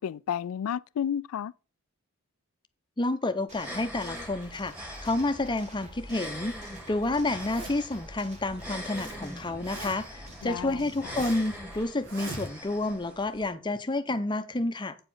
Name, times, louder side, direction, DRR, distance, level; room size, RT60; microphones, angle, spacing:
voice 1, 0.0-1.5 10.4-11.1, left 9 dB, 90° left, 0.3 m, -32 dB
voice 2, 3.0-6.6 6.9-15.0, left 2 dB, 20° left, 0.7 m, -30 dB
sound 1, 3.5-13.5, equal, 10° right, 2.0 m, -43 dB
sound 2, 3.5-11.8, equal, 35° right, 2.1 m, -47 dB
Zipper (clothing), 7.3-8.0 8.6-9.2 9.4-10.2 10.7-11.5 12.0-12.8, right 2 dB, 60° right, 1.7 m, -41 dB
8.8 x 5.0 x 5.4 m
head